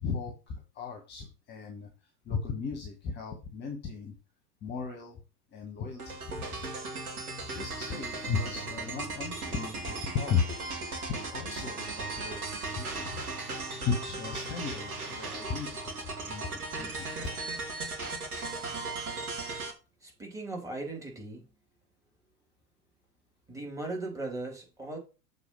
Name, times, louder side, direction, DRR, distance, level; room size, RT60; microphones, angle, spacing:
voice 1, 0.0-1.9 2.2-4.2 4.6-5.2 5.5-6.7 7.5-10.6 11.1-12.4 12.7-13.3 13.8-16.0 16.3-17.1, left 6 dB, 20° left, 1.2 m, -35 dB
sound 1, 6.0-19.7, right 3 dB, 60° right, 2.5 m, -37 dB
voice 2, 20.0-21.6 23.5-25.0, right 2 dB, 5° right, 2.6 m, -38 dB
6.9 x 4.0 x 5.5 m
figure-of-eight pair, 100°, 48 cm